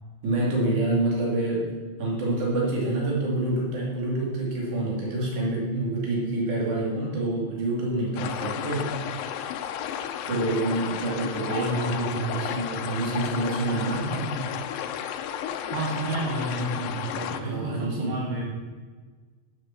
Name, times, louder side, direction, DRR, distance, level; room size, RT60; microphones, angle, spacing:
voice 1, 0.2-1.7 2.0-8.9 10.3-14.3 17.4-18.1, right 2 dB, 60° right, -3 dB, 3.8 m, -27 dB
sound 1, 8.2-17.4, left 9 dB, 85° left, 2.4 m, -33 dB
voice 2, 11.4-12.3 15.7-18.4, right 1 dB, 80° right, -4 dB, 3.2 m, -30 dB
8.8 x 7.1 x 7.1 m, 1.4 s
omnidirectional pair, 4.0 m